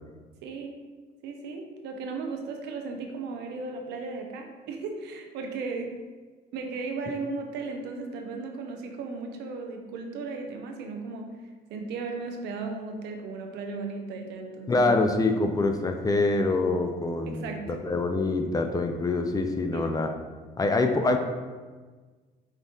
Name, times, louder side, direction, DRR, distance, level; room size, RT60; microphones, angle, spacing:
voice 1, 0.4-0.8 1.2-5.9 6.5-11.3 11.7-14.9 17.3-17.7 19.7-20.0, right 4 dB, 80° right, 3 dB, 0.7 m, -36 dB
voice 2, 14.7-20.1 20.6-21.2, left 2 dB, 20° left, 5 dB, 0.4 m, -25 dB
5.2 x 2.5 x 3.6 m, 1.4 s
cardioid pair, 110°, 17 cm